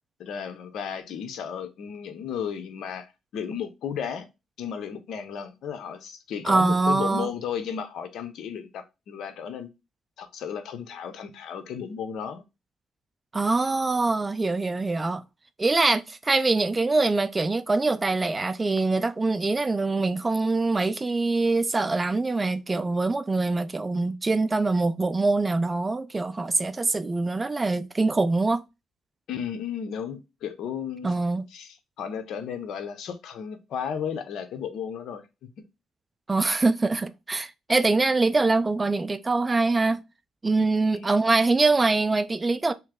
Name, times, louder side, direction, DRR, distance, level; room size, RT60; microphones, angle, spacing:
voice 1, 0.2-3.1 3.3-4.3 4.6-9.7 10.2-12.4 29.3-31.1 31.5-35.3 40.9-41.2, left 7 dB, 75° left, 0.7 m, -34 dB
voice 2, 6.4-7.3 13.3-15.2 15.6-28.6 31.0-31.4 36.3-40.0 40.4-42.7, right 3 dB, 25° right, 0.4 m, -24 dB
3.3 x 3.1 x 3.6 m
cardioid pair, 90°, 0 cm